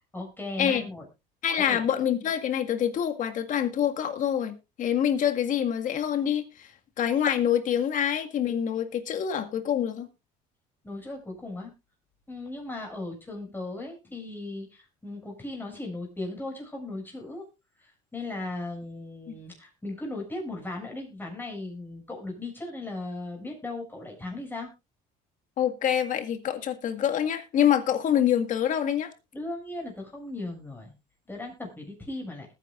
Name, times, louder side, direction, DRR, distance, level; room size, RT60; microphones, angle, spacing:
voice 1, 0.1-1.1 1.6-1.8 10.8-11.7 12.3-17.5 17.8-24.7 29.3-30.9 31.3-32.5, left 2 dB, 10° left, 1 dB, 7.0 m, -37 dB
voice 2, 1.4-6.7 7.0-10.1 19.3-19.4 25.6-29.1, left 9 dB, 50° left, 7 dB, 1.9 m, -26 dB
20.5 x 9.6 x 2.5 m, 0.25 s
cardioid pair, 110°, 17 cm